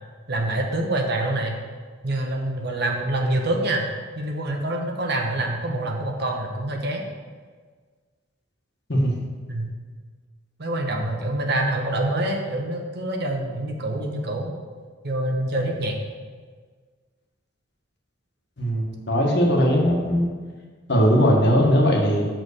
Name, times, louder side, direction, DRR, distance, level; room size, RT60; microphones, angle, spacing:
voice 1, 0.3-1.6 2.0-3.9 4.2-7.0 9.5-9.7 10.6-14.5 15.0-16.0, right 1 dB, 55° right, 2 dB, 1.0 m, -26 dB
voice 2, 18.6-20.3 20.9-22.3, equal, 60° left, -2 dB, 1.5 m, -19 dB
6.4 x 4.6 x 6.7 m, 1.5 s
head